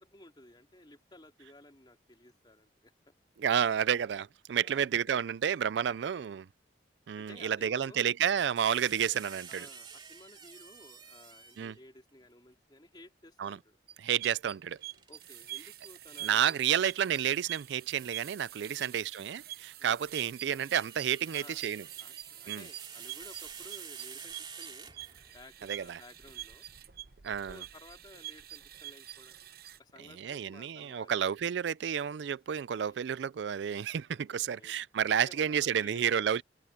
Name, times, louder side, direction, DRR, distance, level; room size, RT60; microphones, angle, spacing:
voice 1, 0.0-3.1 4.6-5.3 6.1-6.4 7.2-8.2 9.5-13.8 15.1-17.0 18.7-19.0 19.8-20.0 21.3-21.6 22.0-25.0 25.3-26.6 27.5-29.4 29.8-31.3 32.8-33.1 34.6-34.8 35.2-36.4, left 1 dB, 25° left, 3.0 m, -55 dB
voice 2, 3.4-6.5 7.1-9.7 11.6-11.8 13.4-13.6 14.0-14.8 16.2-21.8 22.5-22.6 25.6-26.0 27.2-27.6 30.2-36.4, right 8 dB, 70° right, 0.4 m, -30 dB
sound 1, 8.6-11.9 14.7-16.2 18.0-18.2 20.3-25.4, right 6 dB, 25° right, 2.7 m, -49 dB
sound 2, 13.9-29.8, right 14 dB, 55° right, 0.8 m, -45 dB
head